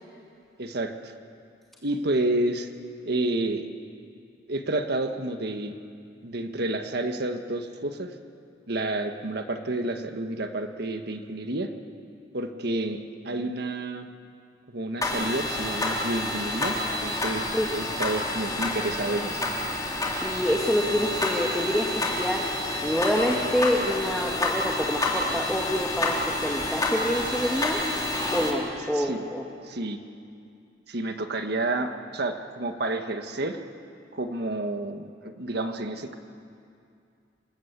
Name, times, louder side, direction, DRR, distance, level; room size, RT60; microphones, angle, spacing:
voice 1, 0.6-1.1 1.8-2.7 3.0-3.6 4.5-5.8 6.2-8.1 8.7-11.7 12.3-14.1 14.7-19.5 28.9-29.2 29.6-30.0 30.9-33.6 34.1-36.2, right 2 dB, 60° right, 6 dB, 1.6 m, -30 dB
sound 1, 15.0-28.5, left 2 dB, 20° left, 3.6 m, -29 dB
voice 2, 20.2-22.5 22.8-27.8 28.3-29.5, equal, ahead, -1 dB, 1.7 m, -27 dB
28.0 x 20.5 x 8.2 m, 2.5 s
head